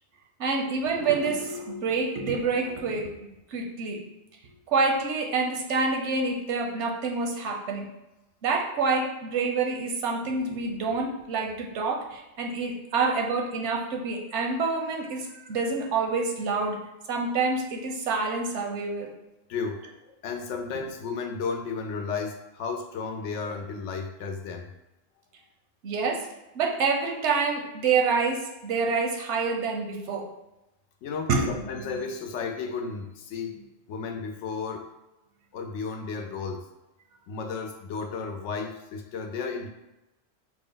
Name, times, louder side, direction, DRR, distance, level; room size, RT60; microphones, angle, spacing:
voice 1, 0.4-3.1 3.5-4.0 4.7-7.9 8.4-16.8 17.1-19.1 25.8-26.3 26.5-30.3 31.3-31.6, right 4 dB, 80° right, 1 dB, 1.0 m, -27 dB
voice 2, 19.5-24.7 31.0-33.6 33.9-34.9 35.5-36.7 37.3-39.7, left 5 dB, 85° left, 4 dB, 0.9 m, -33 dB
4.7 x 2.1 x 3.8 m, 0.98 s
omnidirectional pair, 1.2 m